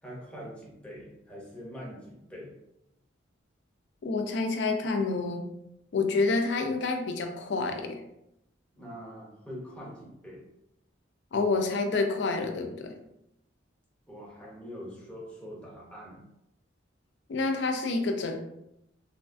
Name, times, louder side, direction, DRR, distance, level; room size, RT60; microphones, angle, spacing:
voice 1, 0.0-2.5 8.7-10.4 14.1-16.3, equal, 5° left, -4 dB, 0.6 m, -43 dB
voice 2, 4.0-5.5 5.9-8.0 11.3-13.0 17.3-18.4, left 3 dB, 60° left, 5 dB, 0.4 m, -28 dB
3.0 x 2.3 x 2.5 m, 0.83 s
head